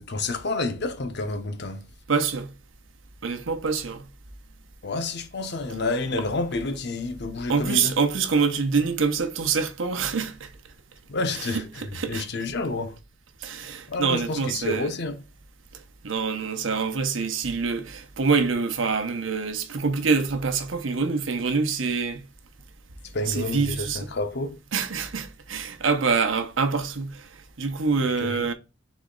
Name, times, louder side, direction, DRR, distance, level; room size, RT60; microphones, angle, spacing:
voice 1, 0.0-1.9 4.8-8.0 11.1-13.0 13.9-15.2 23.1-24.6 28.0-28.5, left 2 dB, 60° left, 0.7 m, -29 dB
voice 2, 2.1-2.5 3.2-4.0 7.5-10.5 11.4-12.2 13.4-14.9 16.0-22.2 23.3-24.1 24.7-27.3 27.6-28.5, right 5 dB, 85° right, 0.8 m, -25 dB
4.1 x 3.1 x 3.8 m
head